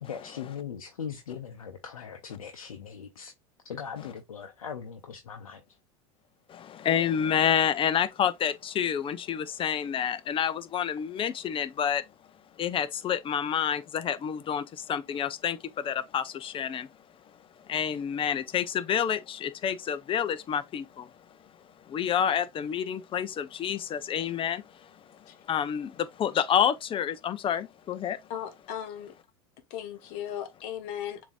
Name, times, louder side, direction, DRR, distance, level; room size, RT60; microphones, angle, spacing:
voice 1, 0.0-3.3 3.6-5.6, left 7 dB, 90° left, 0.7 m, -40 dB
voice 2, 6.5-12.0 12.6-16.9 17.7-21.1 21.9-24.9 25.5-28.2, left 8 dB, 30° left, 0.6 m, -28 dB
voice 3, 28.3-29.1 29.7-31.3, left 10 dB, 60° left, 1.1 m, -37 dB
6.9 x 2.8 x 2.4 m
hypercardioid pair, 90°, 18 cm